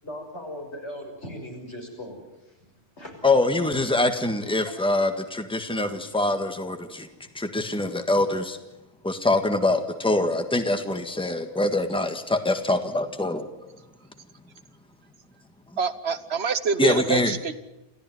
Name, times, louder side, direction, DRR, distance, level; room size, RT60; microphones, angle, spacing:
voice 1, 0.0-2.6 3.0-3.2 4.6-4.7, left 1 dB, 85° left, 1 dB, 6.5 m, -38 dB
voice 2, 3.2-7.1 7.3-8.6 9.0-13.5 16.8-17.4, left 2 dB, 5° left, 7 dB, 1.7 m, -24 dB
voice 3, 15.8-17.5, right 5 dB, 70° right, 12 dB, 1.4 m, -26 dB
28.0 x 15.5 x 9.4 m, 0.99 s
omnidirectional pair, 1.1 m